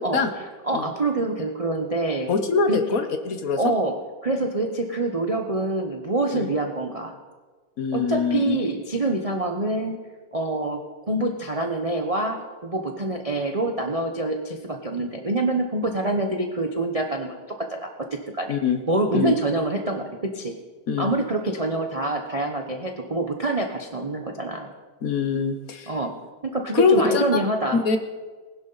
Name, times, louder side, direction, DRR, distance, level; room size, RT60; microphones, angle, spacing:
voice 1, 0.6-2.3 2.7-2.8 3.6-3.9 4.2-7.2 7.9-10.0 10.3-10.8 11.1-17.9 18.3-18.6 18.9-20.5 21.0-24.7 25.9-26.1 26.4-27.8, right 2 dB, 35° right, 3 dB, 0.5 m, -26 dB
voice 2, 2.3-3.6 6.3-6.5 7.8-8.6 18.5-18.8 19.1-19.3 20.9-21.1 25.0-25.9 26.7-27.2 27.7-28.0, left 5 dB, 55° left, 7 dB, 1.2 m, -23 dB
20.0 x 11.0 x 4.0 m, 1.4 s
omnidirectional pair, 2.0 m